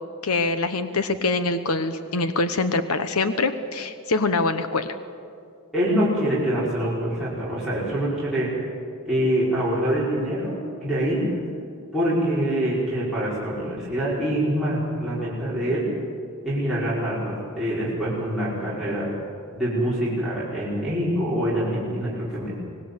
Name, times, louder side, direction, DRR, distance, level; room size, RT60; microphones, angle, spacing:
voice 1, 0.2-4.9, left 3 dB, 80° left, 10 dB, 1.1 m, -24 dB
voice 2, 5.7-8.5 9.0-11.3 11.9-15.9 16.4-19.1 19.5-22.6, equal, ahead, -11 dB, 5.3 m, -25 dB
25.5 x 19.5 x 8.2 m, 2.4 s
head